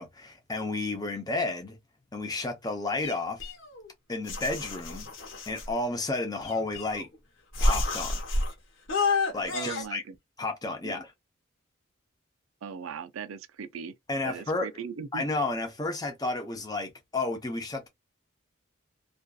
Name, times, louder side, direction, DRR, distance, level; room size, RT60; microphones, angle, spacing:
voice 1, 0.0-1.8 2.1-3.5 4.1-5.1 5.5-7.1 7.6-8.2 9.3-10.0 10.4-11.1 14.1-14.7 15.1-17.9, left 2 dB, 20° left, 0.6 m, -32 dB
sound 1, 3.0-3.9 4.3-5.7 6.4-7.2 7.5-8.5 8.9-9.8, left 2 dB, 65° left, 1.0 m, -29 dB
voice 2, 9.5-10.2 10.8-11.0 12.6-13.9 14.2-15.2, right 6 dB, 80° right, 0.4 m, -38 dB
2.6 x 2.3 x 2.2 m
head